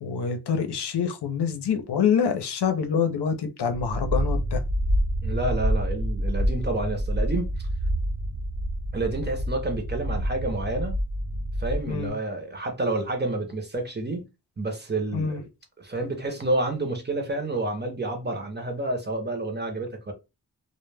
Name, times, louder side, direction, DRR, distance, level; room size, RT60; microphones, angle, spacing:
voice 1, 0.0-4.6 11.9-12.1 15.1-15.4, left 7 dB, 80° left, 0.6 m, -26 dB
sound 1, 3.7-12.1, equal, 60° right, 0.9 m, -27 dB
voice 2, 5.2-7.7 8.9-11.0 11.6-14.3 14.6-15.5 15.8-20.1, right 2 dB, 25° right, 0.6 m, -29 dB
2.1 x 2.1 x 3.2 m
wide cardioid pair, 115°, 40 cm